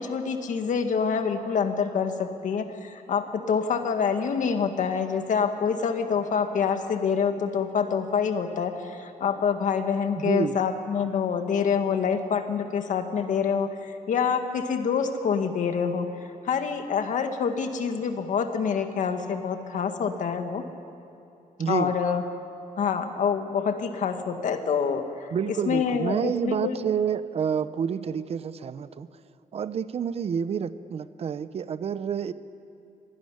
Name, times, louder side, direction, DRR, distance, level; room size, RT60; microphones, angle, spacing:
voice 1, 0.0-16.1 16.4-20.6 21.7-22.2 22.8-26.8, left 6 dB, 65° left, 6 dB, 1.9 m, -26 dB
voice 2, 10.1-10.6 21.6-21.9 25.3-29.1 29.5-32.3, right 7 dB, 45° right, 14 dB, 0.7 m, -28 dB
25.0 x 17.5 x 10.0 m, 2.8 s
wide cardioid pair, 170°, 14 cm